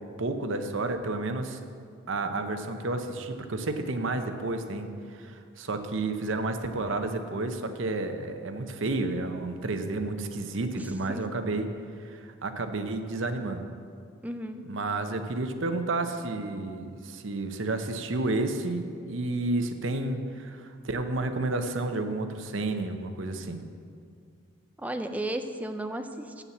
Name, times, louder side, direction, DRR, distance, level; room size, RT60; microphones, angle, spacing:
voice 1, 0.2-1.6 2.1-11.7 12.0-13.6 14.7-23.6, right 2 dB, 60° right, 7 dB, 0.7 m, -31 dB
voice 2, 10.7-11.2 14.2-14.6 24.8-26.4, right 1 dB, 5° right, 7 dB, 0.4 m, -34 dB
7.2 x 7.0 x 7.1 m, 2.3 s
head